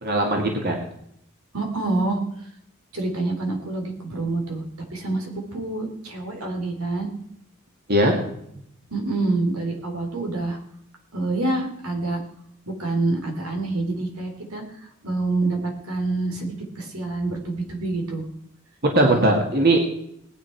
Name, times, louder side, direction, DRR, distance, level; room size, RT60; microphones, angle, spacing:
voice 1, 0.0-0.8 7.9-8.1 18.9-19.8, right 1 dB, 45° right, 1 dB, 2.1 m, -19 dB
voice 2, 1.5-2.2 2.9-4.6 4.9-7.1 8.9-10.6 11.1-12.2 12.7-14.6 15.0-18.2 19.0-19.2, right 2 dB, 85° right, 2 dB, 3.8 m, -27 dB
19.5 x 9.6 x 4.7 m, 0.73 s
head